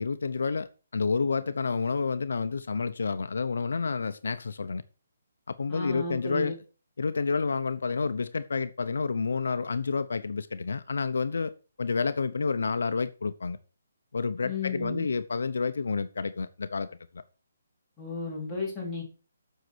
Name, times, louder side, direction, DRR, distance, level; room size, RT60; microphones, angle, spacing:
voice 1, 0.0-4.8 5.5-6.5 7.0-11.5 11.8-13.6 14.1-17.2, left 4 dB, 75° left, 0.8 m, -29 dB
voice 2, 5.7-6.5 14.4-15.1 18.0-19.0, left 3 dB, 5° left, 3.8 m, -34 dB
8.0 x 6.6 x 6.2 m
hypercardioid pair, 170°, 0 cm